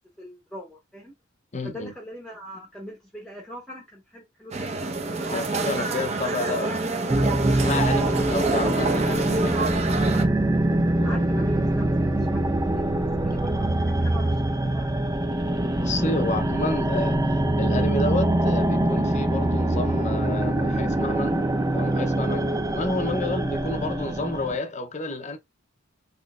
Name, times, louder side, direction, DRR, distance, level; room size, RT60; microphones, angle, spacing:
voice 1, 0.2-1.1 1.6-4.9 5.6-6.1 7.9-8.3 11.0-14.4 14.7-15.0 15.5-15.6, equal, 5° left, 0.9 m, -41 dB
voice 2, 1.5-1.9 5.3-6.7 7.2-9.8 11.0-11.2 15.8-25.4, left 2 dB, 35° left, 0.7 m, -30 dB
sound 1, 4.5-10.2, right 3 dB, 30° right, 0.9 m, -27 dB
sound 2, 7.1-24.6, right 1 dB, 15° right, 0.4 m, -24 dB
5.9 x 3.1 x 2.4 m
head